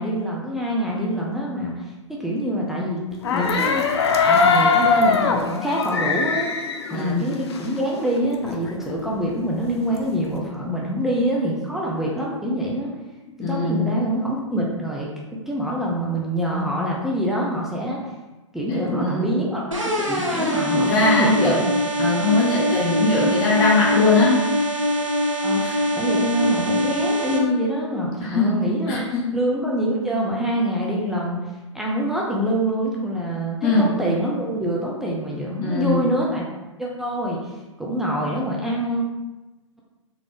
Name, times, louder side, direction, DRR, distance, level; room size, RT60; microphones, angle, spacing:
voice 1, 0.0-3.9 4.2-6.6 6.9-12.9 13.4-15.1 15.5-18.0 18.5-21.5 25.4-25.6 26.0-29.0 29.3-31.4 31.7-36.5 36.8-37.5 37.8-39.0, equal, ahead, -4 dB, 0.5 m, -25 dB
sound 1, 3.2-7.8 8.2-8.3 8.4-10.3, left 4 dB, 55° left, 0.6 m, -21 dB
voice 2, 6.9-7.3 13.4-13.8 18.7-19.6 20.7-21.6 22.0-24.5 25.6-25.7 28.2-28.6 28.9-29.4 33.6-33.9 35.6-36.1, left 3 dB, 30° left, -3 dB, 0.9 m, -21 dB
sound 2, 19.7-27.4, equal, 80° right, 1.0 m, -23 dB
3.8 x 3.3 x 3.3 m, 1.1 s
figure-of-eight pair, 115°, 16 cm